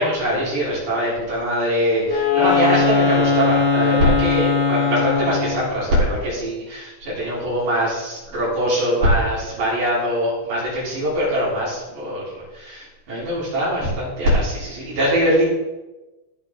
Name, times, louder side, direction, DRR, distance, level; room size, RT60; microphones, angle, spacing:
voice 1, 0.0-15.5, equal, 85° right, -8 dB, 5.1 m, -22 dB
Wind instrument woodwind instrument, 2.0-5.7, left 5 dB, 75° left, 3.4 m, -19 dB
15.0 x 6.6 x 3.6 m, 1.1 s
omnidirectional pair, 3.6 m